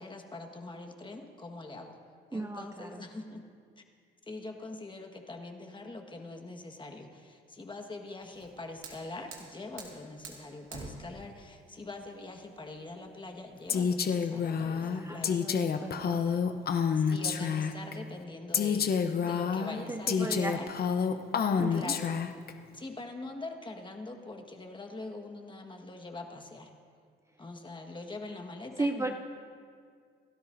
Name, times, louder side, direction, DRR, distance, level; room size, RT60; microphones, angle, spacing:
voice 1, 0.0-2.0 2.3-3.4 3.8-3.9 4.3-15.6 16.9-20.7 21.7-22.1 22.7-26.7 27.4-29.1, left 2 dB, 25° left, 4 dB, 1.6 m, -43 dB
voice 2, 2.3-3.0 14.9-16.2 19.9-20.7 21.6-22.0 28.8-29.1, right 2 dB, 15° right, 5 dB, 0.6 m, -35 dB
Fire, 8.2-14.2, right 4 dB, 80° right, 2.6 m, -49 dB
Female speech woman speaking, 13.7-17.9 18.5-22.5, left 6 dB, 50° left, 0.9 m, -29 dB
28.0 x 12.5 x 2.7 m, 2.1 s
cardioid pair, 90°, 20 cm